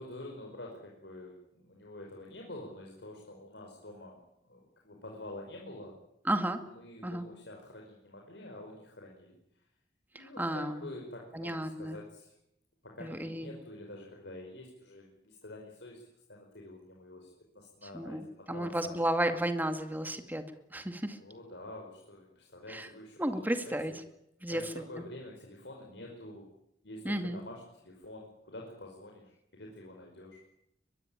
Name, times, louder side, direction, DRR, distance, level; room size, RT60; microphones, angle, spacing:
voice 1, 0.0-6.0 6.7-9.7 10.1-12.3 12.8-16.0 16.3-19.1 21.2-24.0 24.5-26.5 26.8-30.4, left 1 dB, 80° left, 0 dB, 5.2 m, -47 dB
voice 2, 6.3-6.6 7.0-7.3 10.1-10.9 11.3-12.0 13.0-13.5 17.9-20.4 20.7-21.2 22.7-22.9 23.2-23.9 24.4-24.6 27.0-27.4, right 1 dB, 10° right, 7 dB, 2.2 m, -33 dB
22.5 x 22.5 x 9.2 m, 0.80 s
head